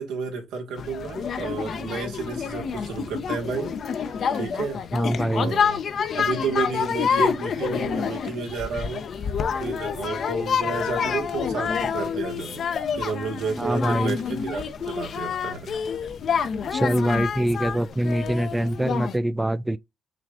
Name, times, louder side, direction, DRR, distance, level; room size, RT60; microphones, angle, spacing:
voice 1, 0.0-4.8 5.3-5.8 6.1-9.1 9.6-12.6 12.9-15.7, right 5 dB, 90° right, 1.5 m, -31 dB
sound 1, 0.8-19.2, left 6 dB, 60° left, 0.6 m, -28 dB
voice 2, 4.9-5.6 13.6-14.2 16.7-19.8, right 1 dB, 10° right, 0.3 m, -24 dB
5.8 x 2.4 x 3.5 m
cardioid pair, 90°, 0 cm